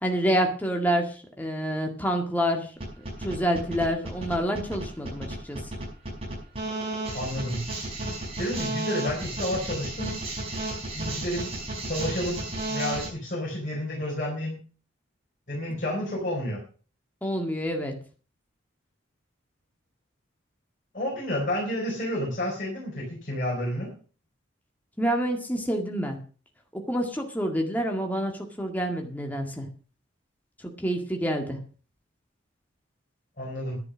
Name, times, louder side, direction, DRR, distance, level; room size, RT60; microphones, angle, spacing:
voice 1, 0.0-2.7 3.2-5.6 17.2-17.9 25.0-26.2 26.7-29.7 30.8-31.6, equal, 10° left, 2 dB, 2.0 m, -27 dB
sound 1, 2.8-13.1, right 2 dB, 30° right, 5.8 m, -33 dB
voice 2, 7.1-7.6 8.4-10.2 11.0-11.5 11.8-14.6 15.5-16.6 20.9-23.9 33.4-33.8, left 1 dB, 45° left, -3 dB, 4.5 m, -30 dB
10.5 x 10.5 x 6.3 m, 0.39 s
head